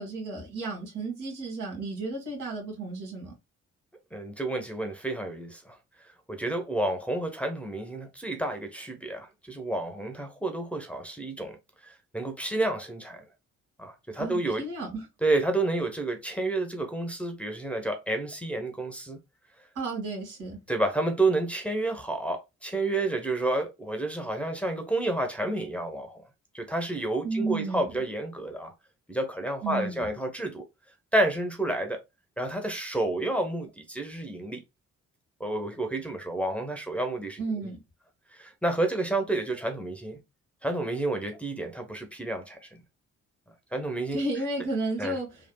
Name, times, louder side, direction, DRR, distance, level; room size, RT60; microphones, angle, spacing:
voice 1, 0.0-3.3 14.2-15.1 19.8-20.6 27.2-27.9 29.6-30.1 37.4-37.8 44.1-45.5, right 2 dB, 75° right, 1.7 m, -33 dB
voice 2, 4.1-5.8 6.3-11.6 11.8-13.2 13.8-14.6 15.2-19.2 20.7-26.2 26.5-28.7 29.1-30.6 31.1-32.0 32.4-34.6 35.4-37.7 38.3-40.2 40.6-42.8 43.7-44.2 45.0-45.2, right 2 dB, 5° left, 0.8 m, -30 dB
3.4 x 2.3 x 2.2 m
supercardioid pair, 50°, 32 cm